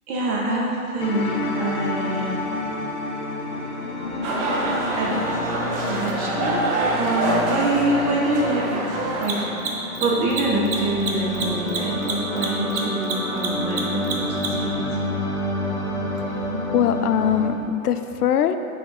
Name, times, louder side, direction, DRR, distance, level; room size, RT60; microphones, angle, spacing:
voice 1, 0.1-2.3 4.9-5.2 5.8-6.6 6.9-8.9 9.2-9.5 10.0-14.9, right 2 dB, 15° right, -3 dB, 0.5 m, -25 dB
sound 1, 1.0-17.5, left 1 dB, 30° left, 1.0 m, -28 dB
sound 2, 4.2-9.4, right 2 dB, 40° right, 1.1 m, -26 dB
Mechanisms, 6.1-6.2 9.1-14.7, right 5 dB, 65° right, 1.3 m, -29 dB
voice 2, 16.2-16.5 16.7-18.6, left 9 dB, 80° left, 10 dB, 0.6 m, -22 dB
6.8 x 4.1 x 5.5 m, 2.7 s
hypercardioid pair, 140°, 45 cm